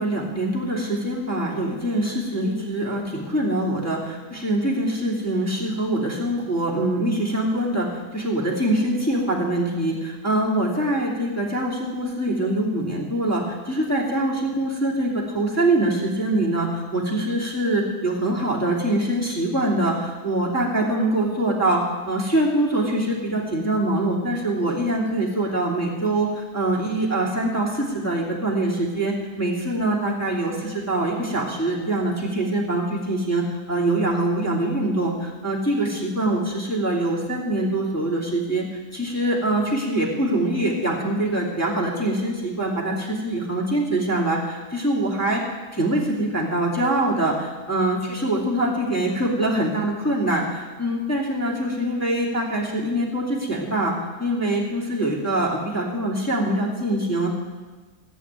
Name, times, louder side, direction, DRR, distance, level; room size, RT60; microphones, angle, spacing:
voice 1, 0.0-38.7 38.9-45.4 45.7-53.9 54.2-57.3, right 1 dB, 10° left, -5 dB, 2.5 m, -24 dB
16.5 x 7.3 x 9.4 m, 1.3 s
omnidirectional pair, 1.7 m